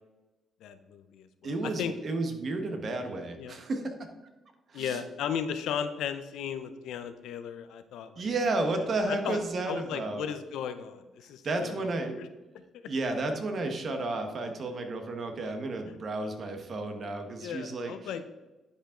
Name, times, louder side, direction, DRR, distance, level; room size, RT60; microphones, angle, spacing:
voice 1, 0.6-1.5 1.8-1.9 3.4-3.6 4.7-8.2 9.1-9.4 9.7-12.3 12.7-12.9 17.4-18.2, left 8 dB, 85° left, 10 dB, 0.6 m, -36 dB
voice 2, 1.4-4.1 4.7-5.0 8.2-10.3 11.4-12.2 12.8-18.3, right 2 dB, 50° right, 5 dB, 1.3 m, -32 dB
10.0 x 5.1 x 3.8 m, 1.1 s
cardioid pair, 90°, 0 cm